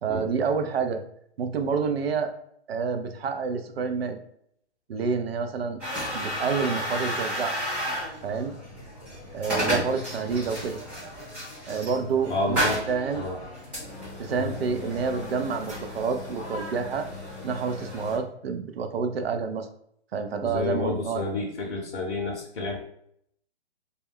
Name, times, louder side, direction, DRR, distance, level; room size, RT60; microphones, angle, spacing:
voice 1, 0.0-1.0 1.4-2.3 2.7-4.2 4.9-5.8 6.1-7.6 8.2-8.5 9.3-10.8 11.7-12.6 12.9-13.2 14.2-17.1 17.4-19.7 20.1-21.2, right 5 dB, 60° right, 7 dB, 0.5 m, -28 dB
sound 1, 5.8-18.2, equal, 5° right, 0.4 m, -33 dB
voice 2, 12.3-12.8 13.1-13.4 14.4-14.5 20.4-22.9, left 2 dB, 55° left, -2 dB, 0.7 m, -30 dB
2.2 x 2.2 x 3.4 m, 0.69 s
figure-of-eight pair, 135°, 34 cm